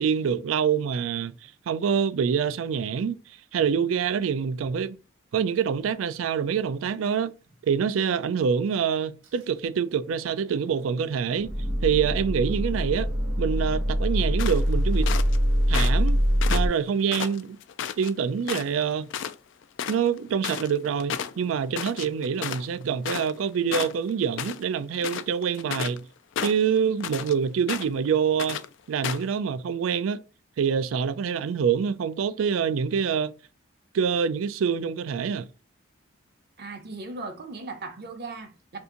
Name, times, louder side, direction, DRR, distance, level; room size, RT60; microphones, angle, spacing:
voice 1, 0.0-3.2 3.5-5.0 5.3-7.3 7.6-11.5 11.8-13.1 13.4-15.1 15.7-16.2 16.5-17.6 18.0-19.1 19.9-26.0 26.4-28.6 28.9-30.2 30.6-33.3 33.9-35.5, right 7 dB, 85° right, 0.3 m, -26 dB
sound 1, 7.5-7.6 9.2-9.3 9.8-16.7, equal, 70° right, 1.0 m, -24 dB
sound 2, 14.4-15.4 15.7-16.1 16.4-18.1 18.5-18.8 19.1-19.4 19.6-23.5 23.7-24.6 24.9-26.0 26.4-27.3 27.7-28.1 28.4-28.7 29.0-29.3, left 8 dB, 65° left, 0.3 m, -32 dB
voice 2, 36.6-38.8, right 3 dB, 55° right, 0.7 m, -38 dB
2.8 x 2.5 x 3.6 m
head